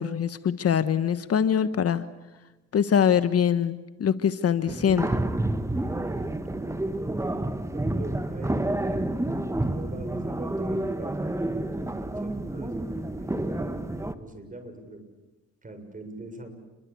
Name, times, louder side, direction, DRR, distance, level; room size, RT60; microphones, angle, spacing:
voice 1, 0.0-2.0 2.7-5.1, left 8 dB, 50° left, 13 dB, 1.3 m, -23 dB
sound 1, 4.7-14.1, right 1 dB, 10° right, 1.6 m, -29 dB
voice 2, 6.2-6.9 7.7-11.1 11.6-15.0 15.6-16.5, right 2 dB, 25° right, 7 dB, 6.8 m, -43 dB
29.0 x 23.0 x 8.5 m, 1.1 s
cardioid pair, 90°, 30 cm